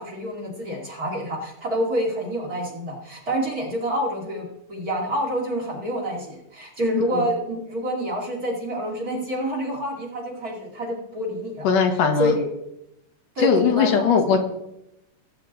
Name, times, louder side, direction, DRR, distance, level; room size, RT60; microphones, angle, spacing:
voice 1, 0.0-12.4 13.3-14.1, equal, 30° right, -1 dB, 2.8 m, -27 dB
voice 2, 11.6-12.3 13.4-14.4, left 6 dB, 80° left, 4 dB, 3.0 m, -19 dB
19.5 x 8.7 x 4.0 m, 0.83 s
omnidirectional pair, 3.7 m